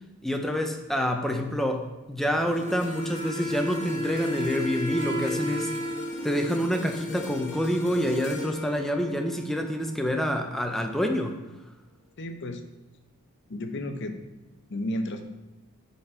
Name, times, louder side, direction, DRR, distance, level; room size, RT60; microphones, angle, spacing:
voice 1, 0.2-5.7 6.2-11.4, equal, ahead, 4 dB, 0.6 m, -27 dB
sound 1, 2.5-10.8 11.3-11.5, left 2 dB, 35° left, 1.2 m, -41 dB
Wind instrument woodwind instrument, 2.5-8.0, left 1 dB, 40° right, 1.7 m, -33 dB
voice 2, 12.2-12.6 13.5-14.2 14.7-15.3, left 1 dB, 55° left, 6 dB, 0.7 m, -32 dB
7.8 x 4.2 x 4.4 m, 1.1 s
head